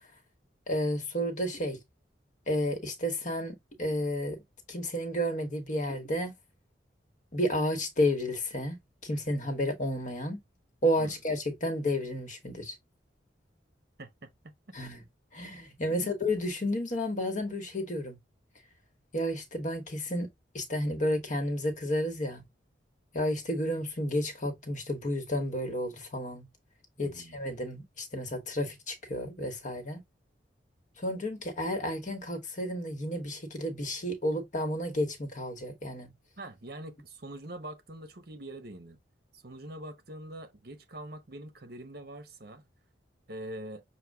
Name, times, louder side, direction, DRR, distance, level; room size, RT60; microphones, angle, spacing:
voice 1, 0.7-1.8 2.5-4.4 4.7-6.3 7.3-10.4 10.8-12.7 14.7-15.0 15.3-18.2 19.1-20.3 20.5-22.4 23.1-26.5 27.0-30.0 31.0-36.1, left 1 dB, 40° left, 1.1 m, -31 dB
voice 2, 14.0-14.8 15.9-16.1 27.0-27.4 36.4-39.0 39.3-42.6 43.3-43.8, right 1 dB, 55° right, 1.0 m, -44 dB
6.3 x 2.2 x 3.5 m
head